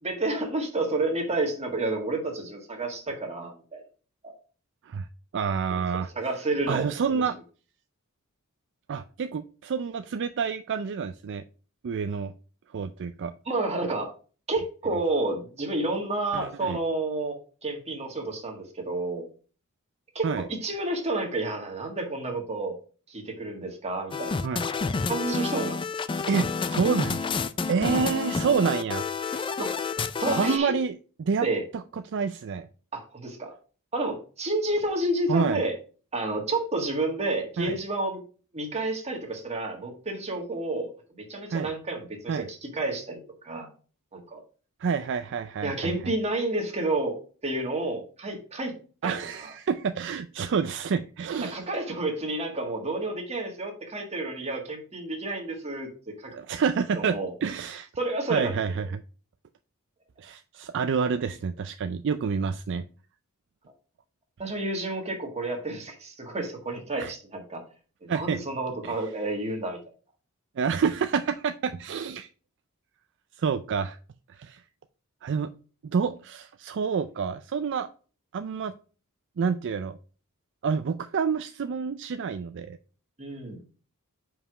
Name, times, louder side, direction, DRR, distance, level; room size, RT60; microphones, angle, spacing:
voice 1, 0.0-3.8 4.2-4.3 5.7-5.8 6.1-6.9 13.4-14.1 14.5-17.4 17.6-19.3 20.1-22.7 23.1-24.7 25.1-25.8 29.6-29.7 30.2-30.7 31.4-31.6 32.9-33.5 33.9-35.7 36.1-38.2 38.5-43.7 44.1-44.4 45.6-48.7 49.0-49.1 49.4-49.5 51.4-56.4 56.9-57.3 58.0-58.6 64.4-67.6 68.0-69.8 83.2-83.6, right 2 dB, 30° right, 2 dB, 1.7 m, -30 dB
voice 2, 5.3-6.1 6.7-7.4 8.9-11.4 11.8-12.3 12.7-13.3 16.3-16.8 20.2-20.4 24.4-24.6 26.3-27.3 27.7-29.5 30.3-30.9 31.2-31.5 31.9-32.7 35.3-35.6 37.6-37.8 41.5-41.7 42.3-42.5 44.8-45.9 49.0-51.6 56.3-57.9 58.3-59.0 60.2-62.8 67.0-67.1 68.1-68.4 68.8-69.0 70.6-72.3 73.4-74.0 74.3-74.6 75.2-75.5 75.8-77.9 78.3-78.7 79.4-80.0 80.6-82.8, right 6 dB, 55° right, 10 dB, 0.4 m, -28 dB
sound 1, 24.1-30.6, left 4 dB, 25° left, 0.4 m, -29 dB
5.5 x 4.8 x 4.8 m, 0.37 s
head